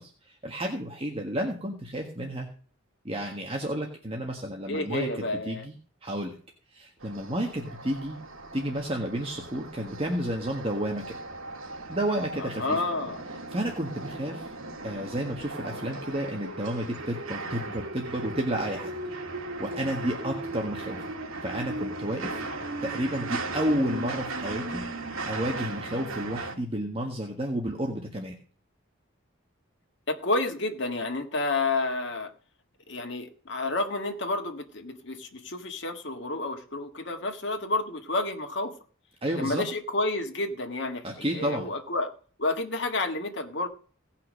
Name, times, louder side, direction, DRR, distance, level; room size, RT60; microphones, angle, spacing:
voice 1, 0.0-2.5 3.0-5.7 6.0-6.3 6.7-8.2 8.5-11.2 11.9-12.8 13.5-14.5 14.8-18.9 19.6-21.0 21.4-22.4 22.8-28.3 39.2-39.6 41.0-41.7, right 1 dB, 30° right, 1 dB, 1.6 m, -31 dB
voice 2, 4.7-5.7 12.4-13.2 22.3-22.7 30.1-32.3 32.9-38.7 39.4-42.1 42.4-43.7, left 2 dB, 60° left, 5 dB, 1.8 m, -30 dB
sound 1, 7.0-26.6, right 2 dB, 80° right, 1.8 m, -37 dB
17.0 x 5.9 x 6.4 m, 0.43 s
head